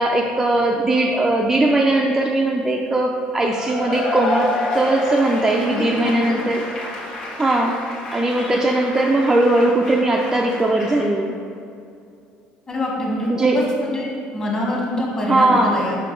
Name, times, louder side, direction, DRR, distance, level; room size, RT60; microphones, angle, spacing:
voice 1, 0.0-4.5 4.7-6.6 7.4-7.8 8.1-11.3 13.3-13.6 15.3-15.9, right 2 dB, 15° right, 0 dB, 0.4 m, -19 dB
Cheering / Applause / Crowd, 3.4-11.1, left 2 dB, 45° left, 1.3 m, -29 dB
voice 2, 5.7-6.4 12.7-13.5 13.9-14.1 14.3-16.0, left 1 dB, 25° left, -3 dB, 1.5 m, -25 dB
5.4 x 5.1 x 4.5 m, 2.5 s
cardioid pair, 140°, 3 cm